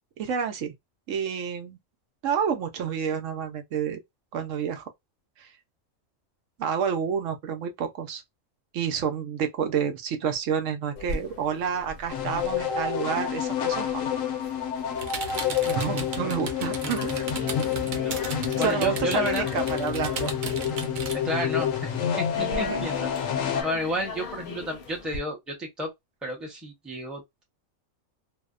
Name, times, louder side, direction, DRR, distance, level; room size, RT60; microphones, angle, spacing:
voice 1, 0.2-0.7 1.1-1.8 2.2-4.0 4.3-4.9 5.4-5.5 6.6-8.2 8.7-14.0 15.7-17.3 18.2-20.3 22.4-22.9, right 7 dB, 75° right, 0.9 m, -29 dB
sound 1, 11.0-25.2, left 3 dB, 55° left, 0.8 m, -40 dB
sound 2, 12.1-23.6, left 9 dB, 80° left, 1.1 m, -28 dB
sound 3, 14.9-21.1, right 5 dB, 55° right, 0.5 m, -36 dB
voice 2, 16.8-17.6 17.9-19.4 21.2-23.1 23.6-25.9 26.2-27.4, equal, ahead, 0.6 m, -32 dB
2.7 x 2.1 x 2.3 m
omnidirectional pair, 1.4 m